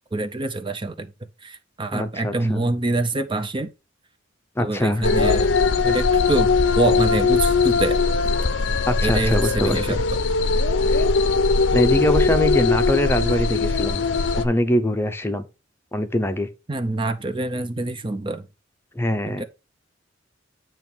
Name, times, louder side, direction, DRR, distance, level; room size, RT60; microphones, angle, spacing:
voice 1, 0.1-1.1 1.4-3.7 4.6-5.6 5.8-8.0 9.0-10.0 16.7-18.5 19.3-19.4, right 2 dB, 25° right, 0.6 m, -25 dB
voice 2, 1.9-2.6 4.6-5.0 8.9-10.0 10.9-11.0 11.7-14.0 14.4-15.4 15.9-16.5 18.9-19.4, left 1 dB, 15° left, 0.7 m, -23 dB
sound 1, 5.0-14.5, left 4 dB, 70° left, 0.6 m, -20 dB
8.9 x 3.1 x 6.0 m
head